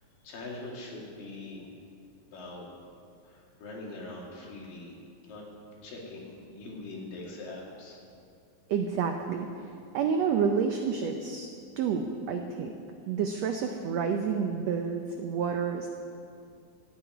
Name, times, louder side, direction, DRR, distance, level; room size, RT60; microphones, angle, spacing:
voice 1, 0.2-1.7 2.2-2.7 3.2-5.0 5.2-5.4 5.8-8.0, left 2 dB, 80° left, -2 dB, 4.0 m, -42 dB
voice 2, 8.7-11.5 11.8-12.7 13.1-15.9, right 6 dB, 85° right, 4 dB, 1.4 m, -29 dB
14.5 x 7.0 x 9.3 m, 2.4 s
omnidirectional pair, 3.9 m